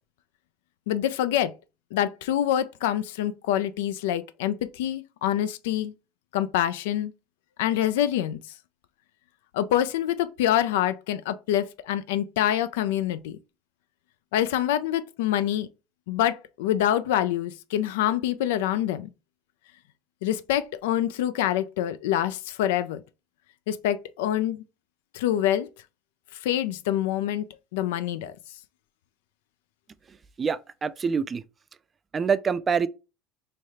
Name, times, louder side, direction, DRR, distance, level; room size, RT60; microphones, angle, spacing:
voice 1, 0.9-1.5 1.9-5.9 6.3-7.1 7.6-8.4 9.5-13.4 14.3-15.7 16.1-19.1 20.2-23.0 23.7-24.6 25.1-25.7 26.4-27.4 27.7-28.3, left 11 dB, 85° left, 0.3 m, -26 dB
voice 2, 30.4-31.4 32.1-32.9, right 6 dB, 30° right, 0.3 m, -25 dB
3.2 x 2.3 x 4.1 m
supercardioid pair, 90°, 0 cm